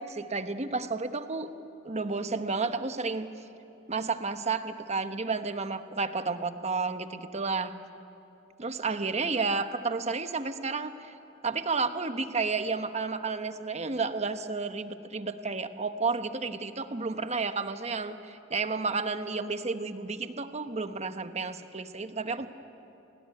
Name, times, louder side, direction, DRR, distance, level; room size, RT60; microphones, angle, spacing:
voice 1, 0.0-1.5 1.8-3.3 3.9-7.7 8.6-11.1 11.4-22.5, right 4 dB, 35° right, 9 dB, 1.0 m, -31 dB
28.5 x 19.5 x 9.5 m, 2.8 s
head